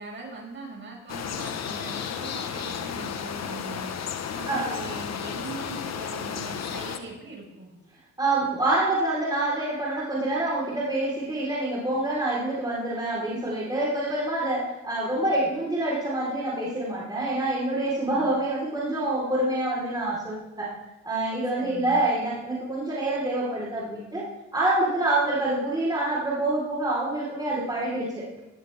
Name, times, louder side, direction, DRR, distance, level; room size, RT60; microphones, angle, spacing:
voice 1, 0.0-3.9 4.3-7.7 18.0-18.3 21.5-22.0, right 3 dB, 40° right, -2 dB, 5.5 m, -41 dB
sound 1, 1.1-7.0, left 7 dB, 60° left, 1.2 m, -33 dB
voice 2, 4.5-4.8 8.2-20.7 21.0-24.3 24.5-28.4, right 2 dB, 15° right, -6 dB, 4.0 m, -26 dB
18.0 x 11.5 x 3.5 m, 0.97 s
cardioid pair, 90°, 30 cm